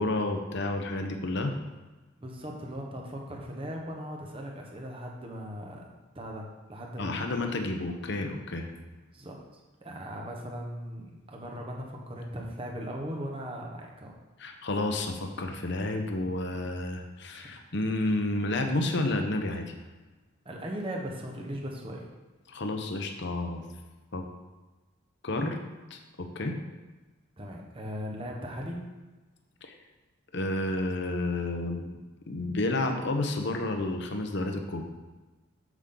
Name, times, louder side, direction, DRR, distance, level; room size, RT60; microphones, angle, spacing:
voice 1, 0.0-1.5 7.0-8.7 14.4-19.7 22.5-23.6 24.1-24.3 25.2-25.6 25.9-26.6 29.6-29.7 30.3-32.0 32.2-34.8, left 2 dB, 55° left, 5 dB, 0.9 m, -30 dB
voice 2, 2.2-5.9 6.1-7.2 9.1-9.4 9.8-14.2 20.4-22.1 27.4-28.8, equal, 25° right, 0 dB, 1.3 m, -38 dB
8.2 x 7.3 x 3.9 m, 1.2 s
head